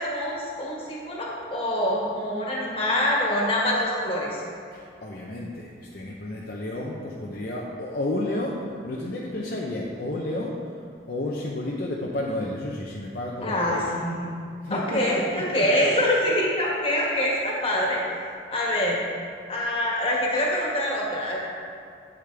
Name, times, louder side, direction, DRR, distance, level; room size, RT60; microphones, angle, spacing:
voice 1, 0.0-4.4 13.4-14.3 14.7-18.0 18.5-19.0 19.5-21.4, left 1 dB, 30° left, -3 dB, 1.5 m, -25 dB
voice 2, 4.7-10.7 11.1-13.9 14.6-15.7, left 1 dB, 50° left, -3 dB, 0.7 m, -31 dB
8.4 x 8.3 x 3.4 m, 2.3 s
head